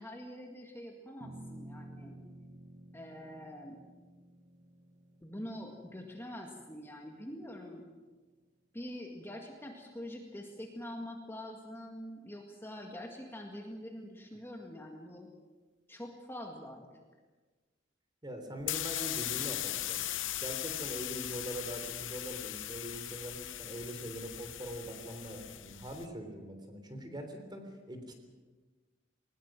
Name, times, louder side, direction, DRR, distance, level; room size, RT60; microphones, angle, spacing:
voice 1, 0.0-2.2 2.9-3.8 5.2-7.9 8.7-15.3 15.9-16.9, left 1 dB, 10° left, 1 dB, 1.9 m, -45 dB
sound 1, 1.2-7.7, right 1 dB, 40° right, 1.0 m, -52 dB
voice 2, 18.2-20.0 20.4-28.1, right 1 dB, 20° right, 6 dB, 3.4 m, -42 dB
sound 2, 18.6-26.1, left 13 dB, 75° left, 0.8 m, -39 dB
20.0 x 20.0 x 7.6 m, 1.3 s
head